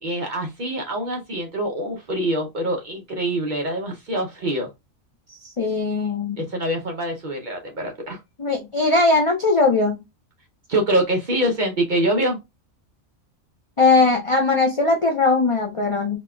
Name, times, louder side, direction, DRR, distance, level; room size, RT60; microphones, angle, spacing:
voice 1, 0.0-4.7 6.4-8.2 10.7-12.4, right 1 dB, 50° right, 2 dB, 0.6 m, -25 dB
voice 2, 5.6-6.4 8.4-10.0 13.8-16.2, left 3 dB, 50° left, 2 dB, 0.3 m, -19 dB
4.1 x 2.2 x 2.2 m, 0.21 s
omnidirectional pair, 1.3 m